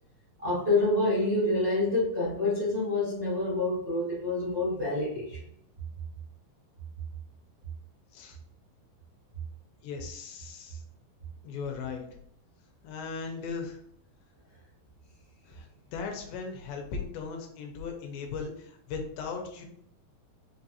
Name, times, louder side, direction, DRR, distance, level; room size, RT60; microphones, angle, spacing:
voice 1, 0.4-5.4, left 2 dB, 80° right, -9 dB, 0.5 m, -27 dB
voice 2, 9.8-10.8 11.4-12.0 12.8-13.8 15.5-19.7, left 5 dB, 85° left, 3 dB, 2.4 m, -38 dB
5.5 x 2.5 x 2.7 m, 0.68 s
omnidirectional pair, 4.1 m